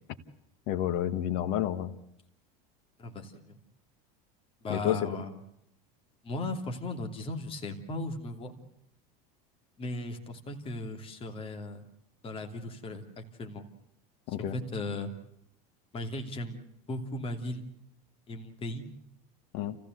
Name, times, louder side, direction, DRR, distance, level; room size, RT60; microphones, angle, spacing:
voice 1, 0.7-1.9 4.7-5.0 14.3-14.6 19.5-19.7, left 11 dB, 60° left, 8 dB, 1.6 m, -30 dB
voice 2, 3.0-3.6 4.6-5.4 6.2-8.5 9.8-11.8 12.2-13.7 14.3-15.1 15.9-17.6 18.3-18.8, left 2 dB, 30° left, 5 dB, 3.0 m, -37 dB
29.5 x 15.5 x 8.1 m, 0.76 s
supercardioid pair, 125°, 19 cm